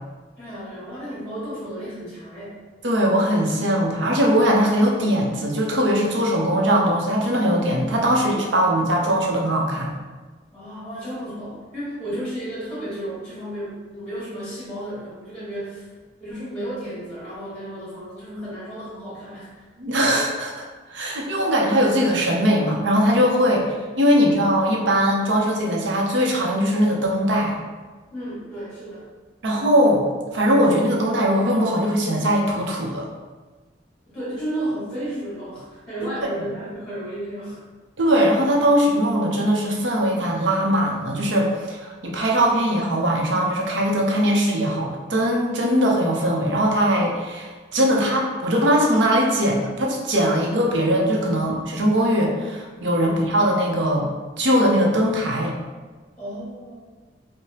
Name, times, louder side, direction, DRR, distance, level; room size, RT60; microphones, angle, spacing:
voice 1, 0.4-2.6 10.5-15.8 16.2-19.6 28.1-29.0 34.1-37.6 56.2-56.8, right 1 dB, 5° left, -9 dB, 1.5 m, -33 dB
voice 2, 2.8-9.9 19.8-23.6 24.0-27.5 29.4-30.0 30.3-33.1 38.0-54.1 54.4-55.5, equal, 80° right, -1 dB, 0.7 m, -20 dB
4.7 x 2.1 x 2.8 m, 1.3 s
head